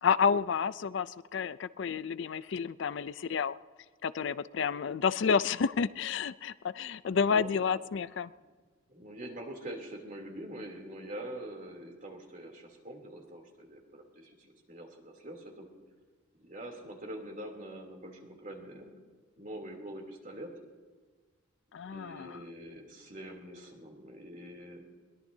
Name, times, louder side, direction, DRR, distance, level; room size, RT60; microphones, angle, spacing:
voice 1, 0.0-3.5 4.0-8.3 21.7-22.4, left 6 dB, 65° left, 16 dB, 0.4 m, -30 dB
voice 2, 7.1-7.8 8.2-8.4 8.9-15.7 16.4-18.9 19.4-20.5 21.8-24.8, right 1 dB, 40° right, 1 dB, 3.1 m, -45 dB
22.0 x 21.0 x 2.8 m, 1.4 s
head